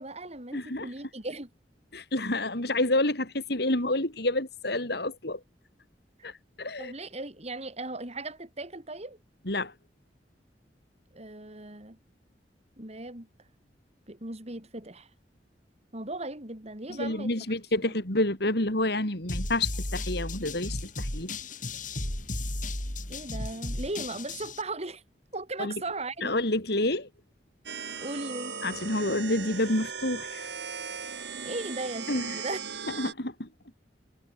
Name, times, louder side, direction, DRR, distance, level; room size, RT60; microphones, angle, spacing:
voice 1, 0.0-1.5 6.8-9.2 11.1-12.0 12.8-13.3 14.1-15.1 15.9-17.3 23.1-25.0 25.3-26.4 28.0-28.6 31.4-32.6, right 2 dB, 40° right, 6.5 m, -37 dB
voice 2, 0.5-0.9 1.9-5.4 6.2-6.3 6.6-6.9 9.5-9.7 17.0-21.3 25.6-25.8 26.2-27.1 28.6-30.5 32.1-32.4 33.0-33.5, left 1 dB, 65° left, 5.4 m, -28 dB
sound 1, 19.3-24.6, left 2 dB, 50° left, 5.6 m, -34 dB
sound 2, 27.7-33.1, right 6 dB, 80° right, 4.5 m, -38 dB
head